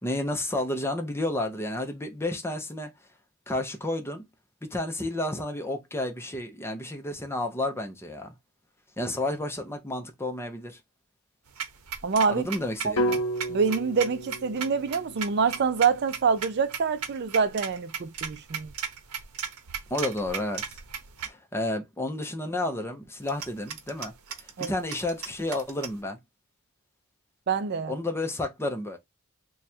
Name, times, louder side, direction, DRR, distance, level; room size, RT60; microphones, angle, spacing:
voice 1, 0.0-2.9 3.5-4.3 4.6-8.3 9.0-10.8 12.3-13.2 19.9-20.6 21.2-26.2 27.9-29.0, left 1 dB, 10° left, 0.7 m, -31 dB
sound 1, 11.5-21.3 23.2-26.0, right 7 dB, 90° right, 0.7 m, -37 dB
voice 2, 12.0-12.4 12.8-12.9 13.5-18.7 24.6-24.7 27.5-28.0, right 5 dB, 50° right, 0.4 m, -26 dB
sound 2, 13.0-17.0, right 1 dB, 90° left, 0.7 m, -33 dB
3.2 x 2.3 x 4.2 m
head